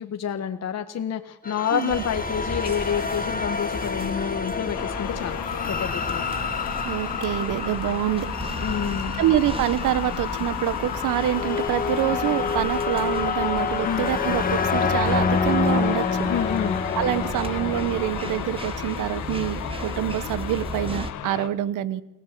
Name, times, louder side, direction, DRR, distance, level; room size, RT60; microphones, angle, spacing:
voice 1, 0.0-5.4 5.7-6.2 8.6-9.2 13.8-14.0 16.3-16.8, left 8 dB, 60° left, 6 dB, 1.6 m, -28 dB
sound 1, 1.4-18.5, left 5 dB, 30° left, 2.1 m, -28 dB
voice 2, 1.7-2.0 6.8-8.3 9.2-16.3 16.9-22.0, right 12 dB, 85° right, 16 dB, 1.4 m, -26 dB
sound 2, 1.9-21.1, right 1 dB, 20° right, 2.4 m, -36 dB
sound 3, 4.7-21.5, left 12 dB, 90° left, 2.0 m, -33 dB
29.5 x 18.0 x 8.5 m, 0.93 s
cardioid pair, 90°, 30 cm